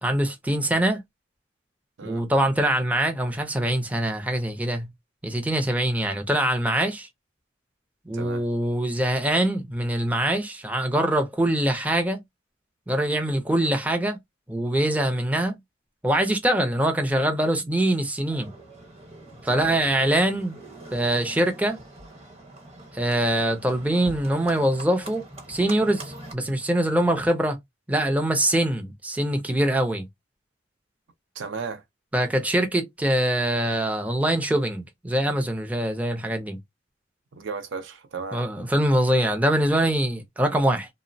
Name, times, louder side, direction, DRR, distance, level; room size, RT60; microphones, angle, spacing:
voice 1, 0.0-1.0 2.0-4.9 5.2-7.1 8.1-12.2 12.9-14.2 14.5-15.6 16.0-18.5 19.4-20.6 20.9-21.8 22.9-27.6 27.9-30.1 32.1-36.6 38.3-40.9, right 1 dB, 10° right, 0.4 m, -23 dB
voice 2, 8.1-8.5 13.6-13.7 19.5-19.9 31.3-31.8 37.3-38.4, right 5 dB, 65° right, 0.5 m, -35 dB
Livestock farm animals working animals, 18.3-26.3, right 1 dB, 30° right, 0.9 m, -43 dB
2.9 x 2.0 x 2.5 m
head